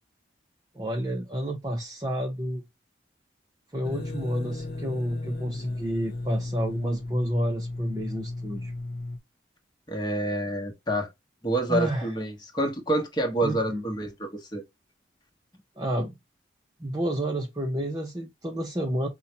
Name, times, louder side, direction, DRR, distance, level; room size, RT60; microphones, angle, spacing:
voice 1, 0.7-2.6 3.7-8.7 11.7-12.1 13.4-13.8 15.8-16.1 16.8-19.1, equal, 20° right, 0.6 m, -30 dB
sound 1, 3.8-9.2, left 2 dB, 55° left, 0.7 m, -35 dB
voice 2, 9.9-11.1 11.4-14.6, right 1 dB, 25° left, 1.0 m, -28 dB
5.4 x 2.2 x 2.7 m
head